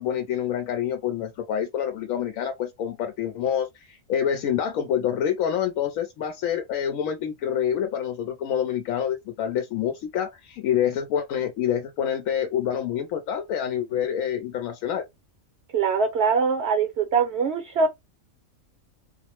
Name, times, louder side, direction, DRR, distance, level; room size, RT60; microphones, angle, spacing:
voice 1, 0.0-15.0, left 9 dB, 90° left, 1.0 m, -27 dB
voice 2, 15.7-17.9, right 5 dB, 60° right, 0.8 m, -22 dB
4.2 x 2.0 x 3.0 m
omnidirectional pair, 1.4 m